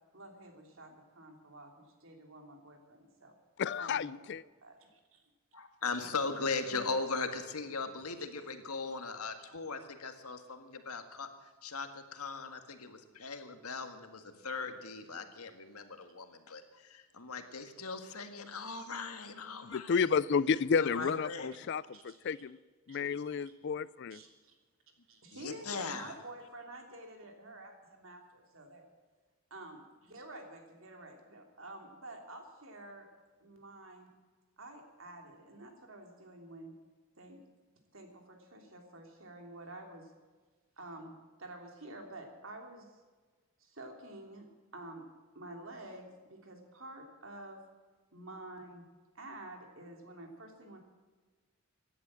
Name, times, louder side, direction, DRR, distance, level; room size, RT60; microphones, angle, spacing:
voice 1, 0.1-3.3 3.8-4.4 4.6-5.2 6.6-6.9 20.9-21.1 21.9-22.4 22.9-23.0 24.1-24.6 25.1-28.8 29.5-33.1 33.4-34.2 34.6-36.7 37.2-37.4 37.9-40.1 40.8-43.0 43.6-44.5 44.7-45.0 45.3-47.6 48.1-48.8 49.1-50.8, right 1 dB, 60° right, 3 dB, 3.1 m, -49 dB
voice 2, 3.6-4.4 19.6-22.6 22.9-24.2, left 6 dB, 50° left, 19 dB, 0.4 m, -31 dB
voice 3, 5.5-11.3 11.6-20.0 20.8-21.5 23.1-23.2 25.3-26.1, left 4 dB, 85° left, 7 dB, 1.8 m, -39 dB
16.0 x 11.0 x 7.5 m, 1.3 s
head